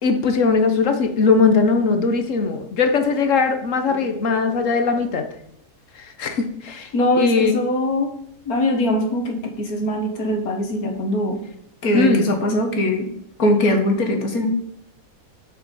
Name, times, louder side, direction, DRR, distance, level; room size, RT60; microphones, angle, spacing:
voice 1, 0.0-5.3 6.0-6.9 7.2-7.5 11.9-12.3, left 4 dB, 60° left, 7 dB, 1.3 m, -19 dB
voice 2, 3.9-4.8 6.9-8.1 8.5-11.4 11.8-13.1 13.4-14.5, left 1 dB, 80° left, 3 dB, 2.0 m, -22 dB
7.4 x 6.0 x 5.4 m, 0.74 s
omnidirectional pair, 1.5 m